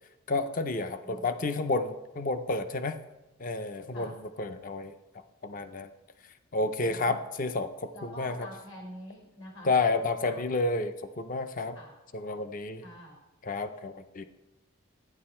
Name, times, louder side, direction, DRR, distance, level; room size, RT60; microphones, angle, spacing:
voice 1, 0.3-3.0 3.4-5.0 5.4-5.9 6.5-8.5 9.6-11.8 12.1-12.8 13.4-14.2, left 3 dB, 40° left, 10 dB, 0.5 m, -30 dB
voice 2, 6.8-7.2 7.9-9.7 10.2-10.4 11.7-11.9 12.8-13.2, equal, 70° left, 1 dB, 4.4 m, -46 dB
12.5 x 9.5 x 4.3 m, 1.0 s
head